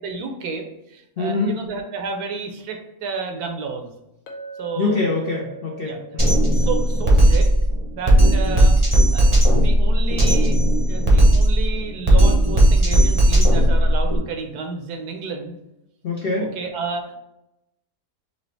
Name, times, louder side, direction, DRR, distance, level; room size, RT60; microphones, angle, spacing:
voice 1, 0.0-3.9 4.6-5.1 5.8-6.0 6.5-7.5 7.9-15.6 16.6-17.2, right 4 dB, 75° right, 3 dB, 1.2 m, -31 dB
voice 2, 1.2-1.6 4.8-6.5 16.0-16.5, left 3 dB, 55° left, -2 dB, 0.6 m, -24 dB
Chink clink, 4.3-8.4, right 5 dB, 70° left, 1.0 m, -41 dB
Drum kit, 6.2-14.2, right 1 dB, 30° right, 0.7 m, -16 dB
4.0 x 2.8 x 3.2 m, 0.88 s
omnidirectional pair, 1.7 m